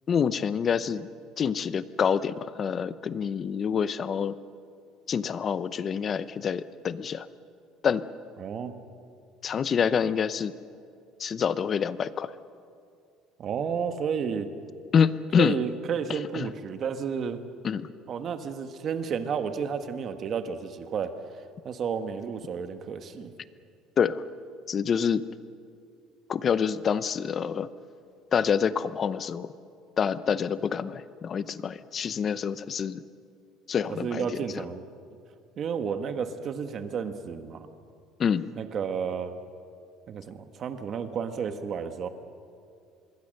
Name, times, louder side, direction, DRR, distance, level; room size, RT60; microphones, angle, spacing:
voice 1, 0.1-1.1 1.4-4.3 5.1-7.3 7.8-8.1 9.4-10.5 11.2-12.3 14.9-15.6 16.1-16.5 17.6-17.9 24.0-24.2 24.7-25.2 26.3-27.7 28.3-29.5 30.0-33.0 33.7-34.3 38.2-38.5, left 7 dB, 30° left, 15 dB, 0.7 m, -27 dB
voice 2, 8.4-8.7 13.4-14.5 15.4-17.4 18.1-21.1 21.6-23.3 33.9-34.9 35.6-37.7 38.5-39.4 40.1-42.1, right 6 dB, 35° right, 8 dB, 1.5 m, -31 dB
25.5 x 21.5 x 6.6 m, 2.4 s
cardioid pair, 150°, 0 cm